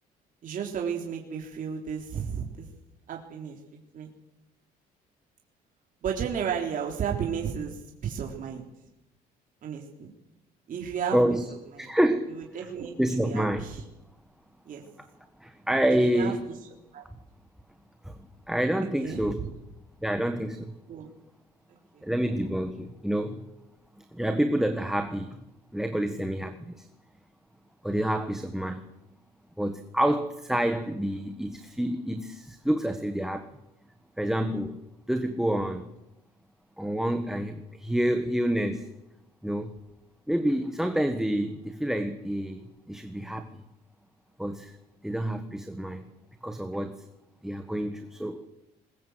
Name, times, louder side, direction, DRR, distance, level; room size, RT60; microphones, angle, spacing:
voice 1, 0.4-2.7 3.1-3.6 3.9-4.1 6.0-8.6 9.6-10.1 10.7-11.2 11.8-11.9 12.3-12.9 13.2-13.8 14.7-14.8 15.9-16.3 16.9-17.0 19.0-19.5 20.9-21.1 21.9-22.1, right 7 dB, 50° right, 0 dB, 3.6 m, -33 dB
voice 2, 11.1-11.4 11.8-12.4 13.0-13.7 15.4-16.4 18.0-18.2 18.5-19.4 20.0-20.7 22.0-23.4 24.0-25.4 25.7-26.9 27.8-28.8 29.6-33.5 34.2-34.8 35.1-35.9 36.8-38.9 39.4-39.7 40.3-43.6 44.4-44.7 45.0-46.1 46.4-46.9 47.4-48.5, right 1 dB, ahead, 7 dB, 1.6 m, -28 dB
21.0 x 20.5 x 8.1 m, 0.89 s
cardioid pair, 110°, 17 cm